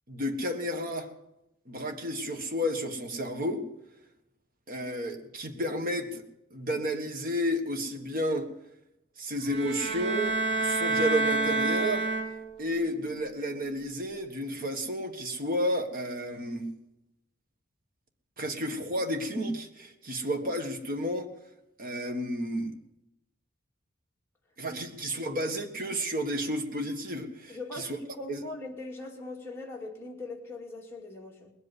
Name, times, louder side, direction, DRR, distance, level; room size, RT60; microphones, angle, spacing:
voice 1, 0.1-1.1 1.7-3.7 4.7-6.2 6.5-8.5 9.2-12.1 12.6-16.7 18.4-21.3 21.8-22.8 24.6-28.0 28.3-28.4, equal, 45° right, 1.6 m, -32 dB
sound 1, 9.5-12.7, right 2 dB, 60° right, 1.3 m, -28 dB
voice 2, 27.5-31.5, left 2 dB, 15° left, 2.4 m, -41 dB
20.0 x 8.1 x 8.0 m
head